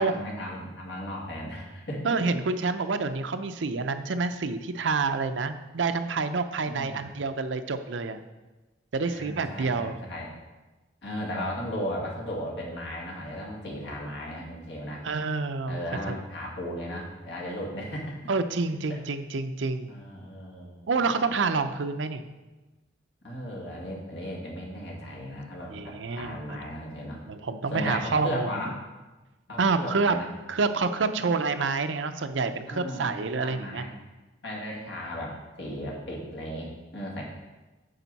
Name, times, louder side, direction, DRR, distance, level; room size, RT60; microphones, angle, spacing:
voice 1, 0.0-2.1 6.7-7.1 9.0-10.3 11.0-15.0 15.7-18.2 19.9-20.8 23.2-27.2 27.7-28.7 29.5-30.3 31.1-31.3 32.7-33.9 34.4-37.2, equal, 70° left, -2 dB, 2.1 m, -36 dB
voice 2, 2.0-8.2 8.9-10.0 15.0-15.8 16.1-16.2 18.3-19.9 20.9-22.2 25.7-26.6 27.3-28.5 29.6-30.2 30.5-33.9, right 4 dB, 80° right, 9 dB, 0.6 m, -28 dB
9.0 x 6.6 x 4.1 m, 1.1 s
head